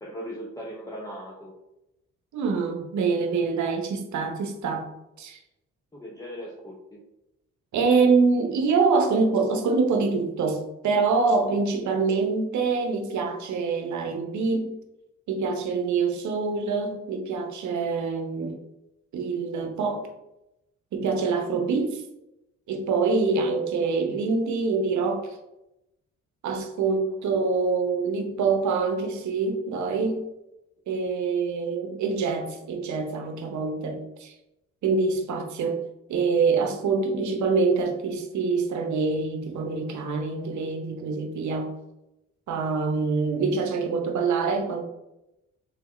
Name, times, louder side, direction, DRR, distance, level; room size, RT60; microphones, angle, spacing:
voice 1, 0.0-1.5 5.9-7.0 26.8-27.2, equal, 10° left, -2 dB, 0.8 m, -39 dB
voice 2, 2.3-4.9 5.2-5.4 7.7-14.8 15.3-18.6 19.1-20.1 20.9-22.0 22.7-25.4 26.4-30.3 30.9-34.3 34.8-35.8 36.1-41.7 42.5-44.8, right 4 dB, 70° right, 4 dB, 0.8 m, -25 dB
3.7 x 3.4 x 3.1 m, 0.90 s
supercardioid pair, 60°, 30 cm